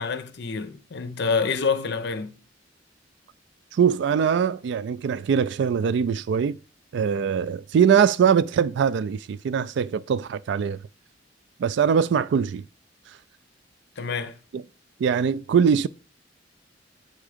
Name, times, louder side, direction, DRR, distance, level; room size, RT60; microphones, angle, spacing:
voice 1, 0.0-2.4 14.0-14.4, left 5 dB, 60° left, 0.6 m, -27 dB
voice 2, 3.8-6.6 6.9-10.8 11.6-12.6 14.5-14.6 15.0-15.9, right 7 dB, 65° right, 0.3 m, -22 dB
7.6 x 3.6 x 5.0 m
head